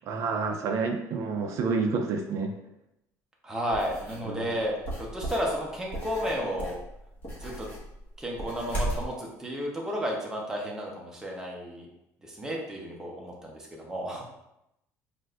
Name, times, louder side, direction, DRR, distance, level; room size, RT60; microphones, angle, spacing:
voice 1, 0.1-2.5 4.3-4.5, right 4 dB, 50° right, 3 dB, 0.4 m, -29 dB
voice 2, 3.4-4.7 5.1-6.8 7.4-7.7 8.2-11.9 12.2-14.2, equal, 10° right, -2 dB, 0.8 m, -32 dB
sound 1, 3.7-4.2 4.8-9.1, right 1 dB, 25° left, 1.3 m, -36 dB
6.1 x 2.6 x 2.5 m, 0.85 s
cardioid pair, 160°, 7 cm